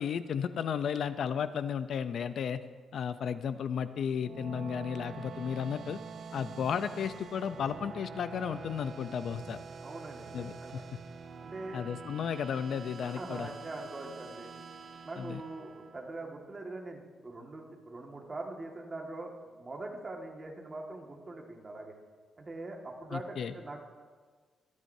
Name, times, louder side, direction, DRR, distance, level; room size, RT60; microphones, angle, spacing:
voice 1, 0.0-2.6 2.9-6.0 6.3-9.6 10.3-10.5 11.7-13.5 15.2-15.4 23.1-23.5, left 7 dB, 65° left, 12 dB, 0.6 m, -34 dB
sound 1, 4.0-16.4, right 5 dB, 50° right, 0.7 m, -46 dB
voice 2, 9.8-10.8 11.4-11.8 13.0-14.5 15.0-19.3 19.6-22.0 22.4-23.8, right 2 dB, 25° right, 0 dB, 1.9 m, -42 dB
25.0 x 9.6 x 2.8 m, 1.5 s
cardioid pair, 110°, 0 cm